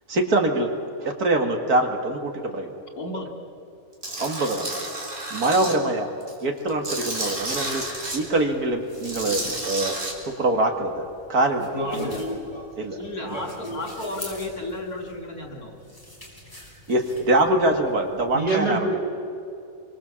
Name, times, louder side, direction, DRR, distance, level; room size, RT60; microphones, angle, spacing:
voice 1, 0.1-0.7 1.0-2.7 4.2-4.7 5.3-6.1 6.4-7.8 8.1-10.0 10.3-11.7 12.8-13.0 16.9-18.8, right 2 dB, 80° right, 4 dB, 2.6 m, -23 dB
voice 2, 3.0-3.3 5.6-5.7 11.9-12.2 13.0-15.8, left 2 dB, 75° left, 2 dB, 3.9 m, -33 dB
Tools, 4.0-5.7 6.2-8.2 8.9-10.1, right 2 dB, 55° right, 4.1 m, -31 dB
sound 1, 6.7-18.5, left 1 dB, 15° left, 5.6 m, -46 dB
voice 3, 11.7-12.6 13.3-13.8 18.3-19.0, right 2 dB, 25° right, -2 dB, 5.0 m, -27 dB
29.0 x 24.0 x 7.3 m, 2.7 s
omnidirectional pair, 1.6 m